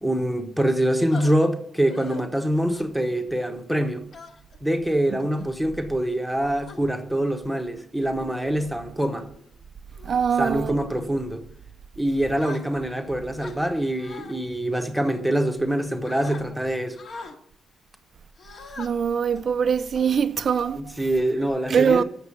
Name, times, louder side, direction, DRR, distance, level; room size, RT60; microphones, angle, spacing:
voice 1, 0.0-4.0 4.6-9.3 10.4-11.4 12.0-17.0 20.7-22.0, right 1 dB, ahead, 1.0 m, -25 dB
sound 1, 1.1-1.3 1.9-2.2 2.7-3.0 4.1-4.6 5.2-5.5 6.2-6.8 7.6-7.8 8.3-8.7 9.2-9.4 9.9-10.2 10.8-11.0 12.4-13.0 13.4-14.3 15.0-15.7 16.0-16.4 17.0-17.4 18.4-18.9 19.4-19.5 19.9-20.6, left 3 dB, 45° left, 1.5 m, -43 dB
voice 2, 10.0-10.7 18.8-20.9 21.7-22.0, right 7 dB, 40° right, 0.4 m, -22 dB
8.1 x 6.6 x 8.4 m
wide cardioid pair, 160°, 0 cm